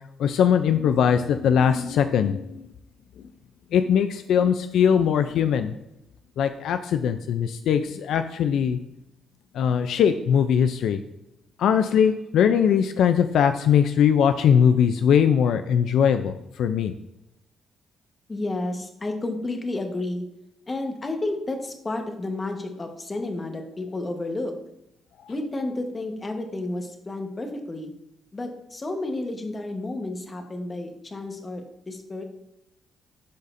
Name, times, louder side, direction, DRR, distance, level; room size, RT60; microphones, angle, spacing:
voice 1, 0.2-2.6 3.7-5.7 6.4-8.8 9.6-11.0 11.6-16.3 16.6-16.9, left 8 dB, 75° left, 9 dB, 0.3 m, -20 dB
voice 2, 18.3-20.2 20.7-24.5 25.3-27.9 28.3-32.2, left 2 dB, 25° left, 4 dB, 1.1 m, -31 dB
11.5 x 4.1 x 2.6 m, 0.86 s
cardioid pair, 90°, 0 cm